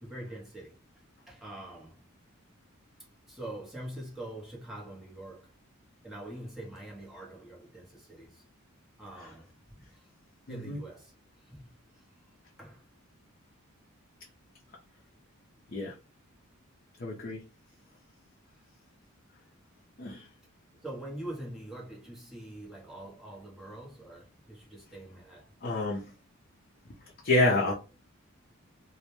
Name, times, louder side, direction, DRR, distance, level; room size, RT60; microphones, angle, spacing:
voice 1, 0.0-0.8 1.3-2.0 3.3-5.5 6.0-8.4 9.0-10.1 10.5-11.1 11.4-12.1 12.6-12.8 20.8-25.5, right 1 dB, ahead, 0.7 m, -44 dB
voice 2, 10.5-10.8 15.7-15.9 17.0-17.4 20.0-20.3 25.6-26.0 27.2-27.7, left 2 dB, 45° left, 0.4 m, -28 dB
2.1 x 2.1 x 2.9 m
head